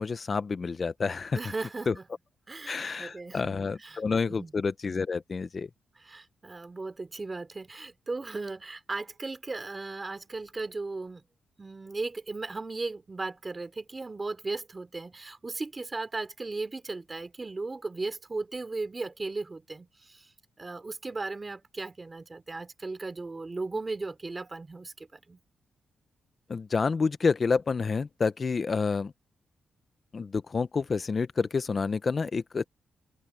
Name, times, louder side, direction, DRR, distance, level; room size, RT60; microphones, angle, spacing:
voice 1, 0.0-1.4 1.9-2.0 2.7-5.7 26.5-29.1 30.1-32.7, left 4 dB, 35° left, 0.5 m, -28 dB
voice 2, 1.3-2.0 2.5-2.7 3.0-4.0 4.4-4.5 6.0-11.2 11.6-20.3 20.6-25.4, right 3 dB, 20° right, 2.9 m, -36 dB
wide cardioid pair, 150°, 0 cm